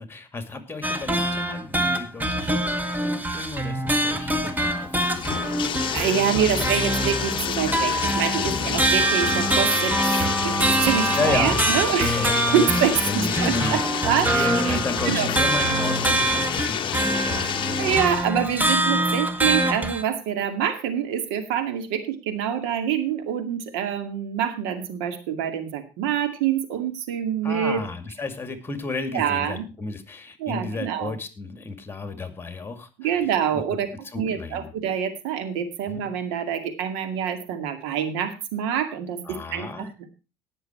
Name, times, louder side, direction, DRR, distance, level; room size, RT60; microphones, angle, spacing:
voice 1, 0.0-5.5 8.4-8.8 11.1-12.6 13.0-17.8 27.4-33.2 33.5-33.6 34.0-34.7 35.9-36.0 39.2-39.9, left 3 dB, 20° left, 9 dB, 2.3 m, -33 dB
sound 1, 0.8-20.0, right 1 dB, 15° right, 1.8 m, -25 dB
Bathtub (filling or washing), 4.3-18.3, left 10 dB, 45° left, 0.8 m, -29 dB
voice 2, 5.9-14.8 15.0-15.3 17.8-27.8 29.1-29.6 30.4-31.1 33.0-33.9 34.2-40.1, right 8 dB, 75° right, 8 dB, 2.1 m, -26 dB
Wind instrument woodwind instrument, 9.0-13.1, right 2 dB, 35° right, 5.7 m, -32 dB
18.0 x 6.9 x 4.4 m, 0.30 s
hypercardioid pair, 80°, 12 cm